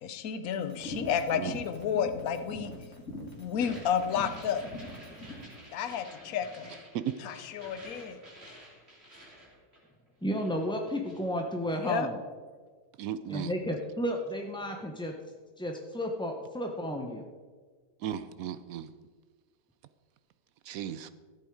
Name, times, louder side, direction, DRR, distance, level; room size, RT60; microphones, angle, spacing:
voice 1, 0.0-2.7 3.2-4.7 5.7-6.7 7.2-8.2 11.8-12.1, left 8 dB, 60° left, 9 dB, 1.2 m, -31 dB
sound 1, 0.7-5.5, left 1 dB, 45° left, 2.5 m, -42 dB
sound 2, 3.5-10.1 10.3-11.3, equal, 35° right, 3.2 m, -51 dB
voice 2, 10.2-12.2 13.3-15.1 15.6-17.2, equal, 5° left, 2 dB, 0.3 m, -32 dB
voice 3, 13.0-13.5 18.0-18.9 20.7-21.1, right 10 dB, 70° right, 13 dB, 0.9 m, -35 dB
14.0 x 8.1 x 4.7 m, 1.5 s
omnidirectional pair, 1.8 m